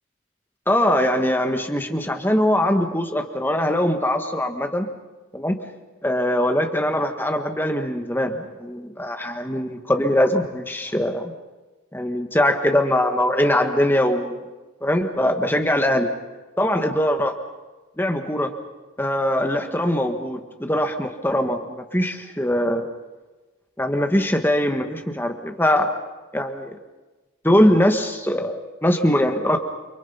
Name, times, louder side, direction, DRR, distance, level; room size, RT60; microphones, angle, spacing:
voice 1, 0.7-4.9 5.3-5.6 6.0-11.3 11.9-14.4 14.8-16.1 16.6-17.4 18.0-18.5 19.0-22.9 23.8-26.0 26.3-26.8 27.4-29.6, left 1 dB, 10° left, 5 dB, 1.6 m, -22 dB
29.5 x 24.0 x 5.7 m, 1.2 s
head